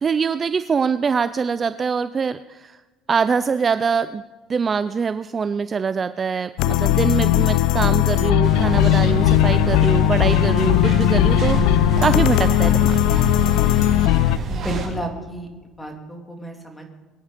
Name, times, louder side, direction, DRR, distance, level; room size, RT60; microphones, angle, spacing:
voice 1, 0.0-2.8 3.1-4.2 4.5-13.0, right 6 dB, 25° right, 12 dB, 0.4 m, -23 dB
sound 1, 6.6-14.4, left 16 dB, 75° left, 0.4 m, -18 dB
sound 2, 8.4-14.9, right 1 dB, 40° right, 6.3 m, -26 dB
voice 2, 14.5-16.9, right 1 dB, 5° left, 2 dB, 2.8 m, -32 dB
23.0 x 10.0 x 5.1 m, 1.3 s
cardioid pair, 130°, 0 cm